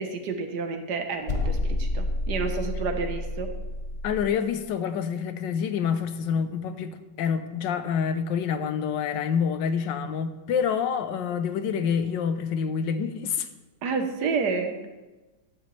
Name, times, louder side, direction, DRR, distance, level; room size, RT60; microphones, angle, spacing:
voice 1, 0.0-3.5 13.8-14.9, right 4 dB, 70° right, 6 dB, 1.5 m, -30 dB
sound 1, 1.3-4.4, left 2 dB, 40° left, 1.0 m, -29 dB
voice 2, 4.0-13.5, left 7 dB, 85° left, 10 dB, 1.4 m, -27 dB
13.0 x 9.4 x 3.2 m, 1.2 s
omnidirectional pair, 1.9 m